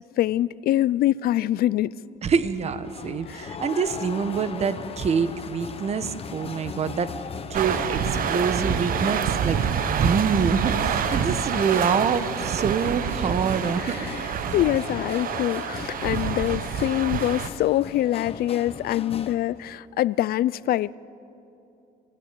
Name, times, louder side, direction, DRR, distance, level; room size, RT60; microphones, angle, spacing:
voice 1, 0.2-1.9 3.3-3.4 11.1-11.2 13.8-14.1 14.5-20.9, left 13 dB, 65° left, 0.5 m, -24 dB
voice 2, 2.2-7.1 7.5-9.6 9.9-14.4, right 6 dB, 40° right, 1.2 m, -26 dB
sound 1, 2.8-19.4, left 6 dB, 35° left, 1.3 m, -38 dB
sound 2, 7.5-17.5, right 8 dB, 55° right, 1.1 m, -27 dB
28.5 x 16.5 x 9.1 m
cardioid pair, 110°, 17 cm